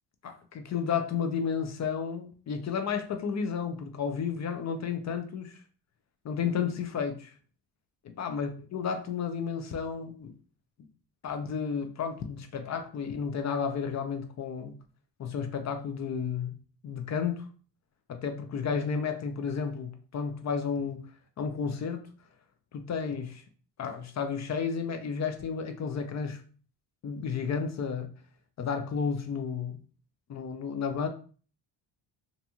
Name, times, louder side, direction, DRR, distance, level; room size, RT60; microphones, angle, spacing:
voice 1, 0.2-5.6 6.2-7.3 8.2-10.3 11.2-14.8 15.2-16.5 16.8-17.5 18.1-21.0 21.4-22.1 22.7-23.4 23.8-26.4 27.0-28.1 28.6-29.8 30.3-31.1, left 6 dB, 40° left, 0.4 m, -32 dB
2.8 x 2.6 x 2.2 m
cardioid pair, 100°, 44 cm